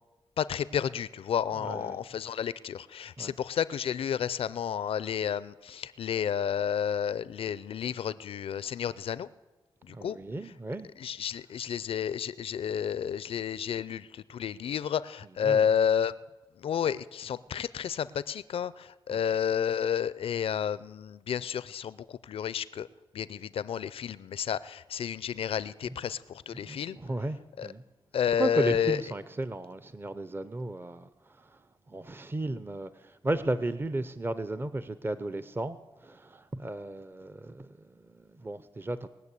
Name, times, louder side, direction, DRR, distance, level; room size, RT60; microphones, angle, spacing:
voice 1, 0.4-9.3 9.8-10.2 11.0-16.1 16.6-22.9 23.1-27.0 27.6-27.7 28.1-29.0, left 8 dB, 80° left, 0.5 m, -31 dB
voice 2, 1.6-2.0 3.2-3.3 9.9-10.9 15.4-15.7 19.1-19.2 26.5-27.8 28.4-31.6 31.9-39.1, right 2 dB, 25° right, 0.6 m, -35 dB
20.5 x 6.8 x 8.3 m
cardioid pair, 70°, 9 cm